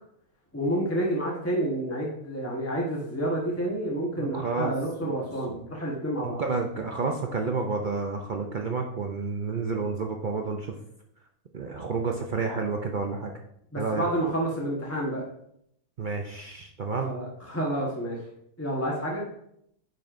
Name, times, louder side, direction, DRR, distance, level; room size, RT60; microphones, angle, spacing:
voice 1, 0.5-6.4 13.7-15.3 17.0-18.2 18.6-19.2, right 1 dB, 10° left, -3 dB, 1.0 m, -29 dB
voice 2, 4.2-4.7 5.0-5.1 5.5-5.6 6.2-10.7 11.5-13.3 13.8-14.1 16.0-17.1, right 4 dB, 60° right, 2 dB, 0.5 m, -30 dB
9.2 x 5.4 x 2.5 m, 0.74 s
omnidirectional pair, 1.5 m